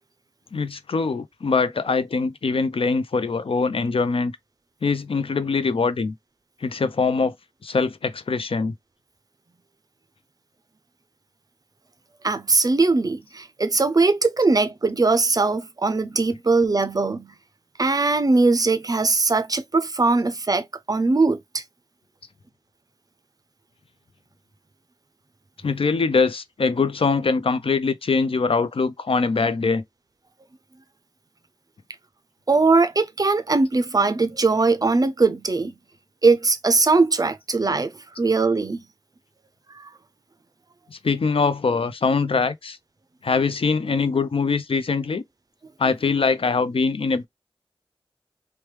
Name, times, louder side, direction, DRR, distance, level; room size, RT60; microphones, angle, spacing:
voice 1, 0.5-4.3 4.8-6.1 6.6-7.3 7.6-8.7 25.6-29.8 40.9-42.8 43.2-45.2 45.8-47.3, left 4 dB, 70° left, 0.4 m, -23 dB
voice 2, 12.2-17.3 17.8-21.6 32.5-35.7 36.2-38.8 39.7-39.9, right 3 dB, 40° right, 0.4 m, -20 dB
3.0 x 2.2 x 3.1 m
wide cardioid pair, 60°, 10 cm